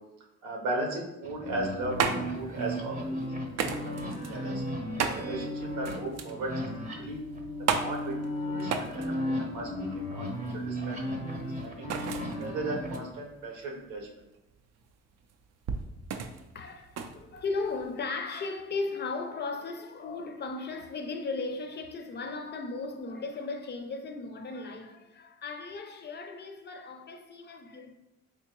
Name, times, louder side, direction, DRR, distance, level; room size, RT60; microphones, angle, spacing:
voice 1, 0.4-3.0 3.8-4.6 5.2-6.5 6.9-7.2 7.6-11.1 11.4-11.9 12.4-14.1, right 2 dB, 90° right, 0.9 m, -36 dB
sound 1, 1.2-13.0, equal, 25° right, 0.8 m, -35 dB
sound 2, 1.5-18.0, right 6 dB, 60° right, 0.4 m, -36 dB
voice 2, 16.5-27.9, left 3 dB, 35° left, 0.4 m, -36 dB
3.5 x 2.7 x 3.0 m
cardioid pair, 90°, 30 cm